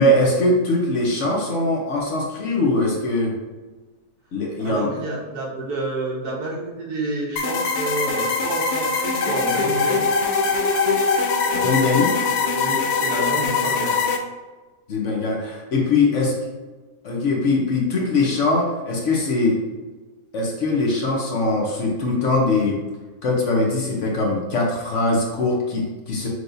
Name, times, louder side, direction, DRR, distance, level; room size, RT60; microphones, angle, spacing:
voice 1, 0.0-3.3 4.3-4.9 11.5-12.1 14.9-16.3 17.0-19.6 20.3-22.8 23.2-26.3, left 2 dB, 55° left, -2 dB, 1.0 m, -21 dB
voice 2, 4.6-10.0 12.5-14.0, right 2 dB, 65° right, -4 dB, 1.7 m, -29 dB
sound 1, 7.4-14.2, left 4 dB, 70° left, 0.6 m, -22 dB
6.2 x 3.2 x 2.6 m, 1.3 s
omnidirectional pair, 1.7 m